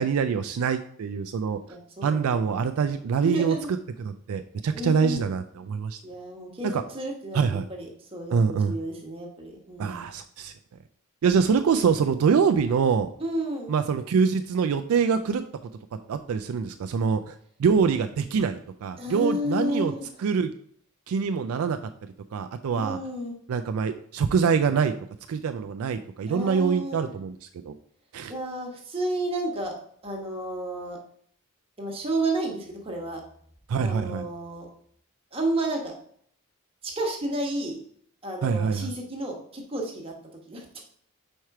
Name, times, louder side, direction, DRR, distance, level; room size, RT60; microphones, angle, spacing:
voice 1, 0.0-1.6 2.0-3.6 4.0-6.0 6.7-6.8 7.3-7.6 8.3-8.8 9.8-10.5 11.2-13.1 13.7-15.4 16.1-19.9 20.2-20.5 21.1-21.9 22.3-23.0 23.5-24.9 25.3-27.7 28.1-28.3 33.7-34.2 38.4-38.9, right 6 dB, 70° right, 9 dB, 0.3 m, -25 dB
voice 2, 1.7-2.4 3.2-3.7 4.7-5.3 6.0-7.4 7.7-10.1 13.2-13.7 19.0-20.1 22.7-23.3 26.3-27.1 28.3-29.7 30.0-31.0 31.8-33.2 33.8-34.7 35.3-35.9 36.8-37.8 38.2-40.1 40.4-40.8, right 1 dB, 25° right, 0 dB, 1.3 m, -31 dB
4.8 x 4.4 x 4.7 m, 0.63 s
head